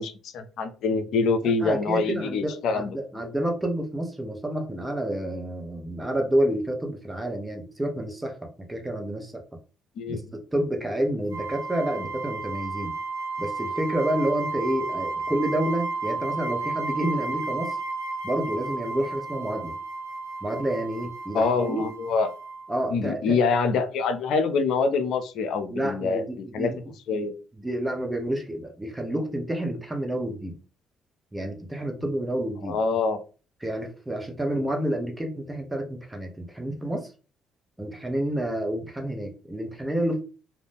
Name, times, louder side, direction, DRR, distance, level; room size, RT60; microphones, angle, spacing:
voice 1, 0.0-2.9 10.0-10.3 21.3-22.3 22.9-26.7 27.1-27.3 32.7-33.2, left 4 dB, 70° left, 9 dB, 0.4 m, -25 dB
voice 2, 1.4-9.4 10.1-12.9 13.4-17.8 18.2-19.8 20.4-21.8 22.7-23.4 25.7-26.8 27.1-27.3 27.6-30.6 31.3-32.8 33.6-37.1 37.8-40.2, right 1 dB, 15° right, 3 dB, 0.9 m, -29 dB
sound 1, 11.3-22.7, right 3 dB, 85° right, 0.5 m, -33 dB
2.4 x 2.1 x 3.4 m, 0.35 s
hypercardioid pair, 50°, 0 cm